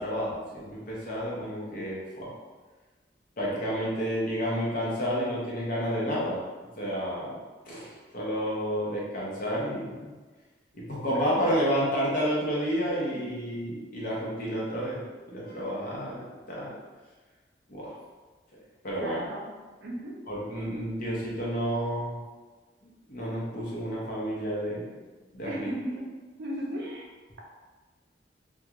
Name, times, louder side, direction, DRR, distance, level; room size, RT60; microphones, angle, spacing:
voice 1, 0.0-2.3 3.4-6.4 6.8-7.4 7.7-10.1 10.7-15.0 15.3-16.7 17.7-17.9 18.8-19.3 20.3-22.2 23.1-24.9 25.3-25.7, equal, 50° left, -5 dB, 0.7 m, -30 dB
voice 2, 11.1-11.7 13.1-13.2 19.0-19.5 19.8-20.2 25.4-26.1 26.4-27.0, right 1 dB, 65° right, -2 dB, 0.5 m, -36 dB
2.3 x 2.3 x 2.8 m, 1.3 s
head